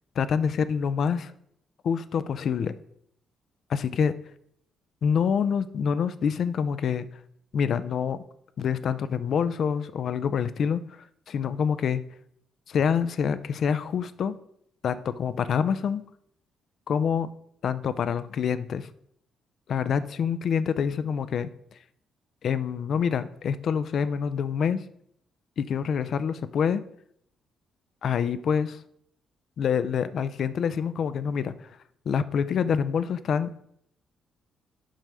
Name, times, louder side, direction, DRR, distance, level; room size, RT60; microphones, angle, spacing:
voice 1, 0.2-1.3 1.8-2.8 3.7-4.1 5.0-7.1 7.5-8.2 8.6-10.8 11.3-12.0 12.7-14.4 14.8-16.0 16.9-17.3 17.6-18.9 19.7-21.5 22.4-24.8 25.6-26.8 28.0-28.8 29.6-31.5 32.1-33.5, left 7 dB, 60° left, 14 dB, 0.5 m, -26 dB
7.6 x 5.4 x 4.7 m, 0.70 s
cardioid pair, 90°, 0 cm